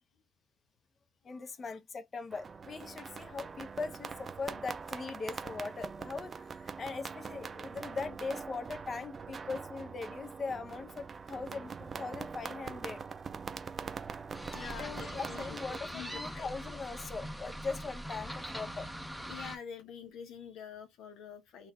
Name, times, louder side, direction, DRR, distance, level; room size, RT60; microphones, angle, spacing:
voice 1, 1.2-13.0 14.8-18.9, left 4 dB, 40° left, 0.9 m, -40 dB
sound 1, 2.3-15.8, right 5 dB, 40° right, 0.4 m, -43 dB
sound 2, 14.3-19.6, equal, ahead, 0.7 m, -42 dB
voice 2, 14.5-16.5 19.3-21.7, left 7 dB, 75° left, 0.7 m, -46 dB
3.8 x 2.5 x 3.2 m
supercardioid pair, 65°, 0 cm